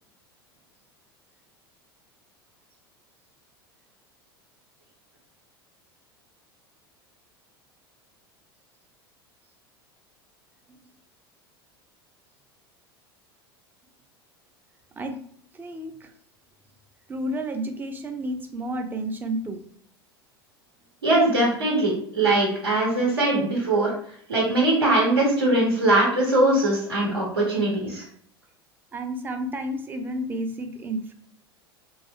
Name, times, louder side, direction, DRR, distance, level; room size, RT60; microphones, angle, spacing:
voice 1, 15.6-16.1 17.1-19.6 28.9-31.1, right 1 dB, 15° right, 6 dB, 0.4 m, -31 dB
voice 2, 21.0-23.9 24.3-28.0, right 2 dB, 80° right, -4 dB, 0.9 m, -21 dB
2.6 x 2.3 x 2.6 m, 0.62 s
figure-of-eight pair, 80°, 13 cm